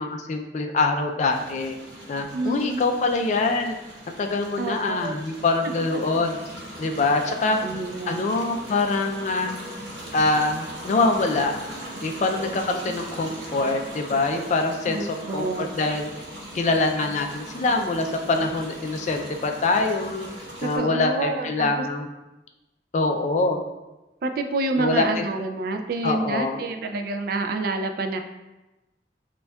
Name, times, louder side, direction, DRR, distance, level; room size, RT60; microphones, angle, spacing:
voice 1, 0.0-1.7 2.1-3.8 4.2-6.4 6.8-7.6 8.1-9.6 10.1-11.6 12.0-15.0 15.3-16.1 16.5-20.3 20.6-22.1 22.9-23.6 24.8-25.2 26.0-26.6, left 3 dB, 40° left, 4 dB, 0.3 m, -24 dB
sound 1, 1.3-20.8, equal, 85° right, 0.9 m, -39 dB
voice 2, 2.3-2.9 4.6-5.1 7.5-8.2 14.9-15.7 20.6-21.9 24.2-28.2, right 3 dB, 55° right, 6 dB, 0.3 m, -28 dB
6.7 x 2.3 x 2.2 m, 1.0 s
head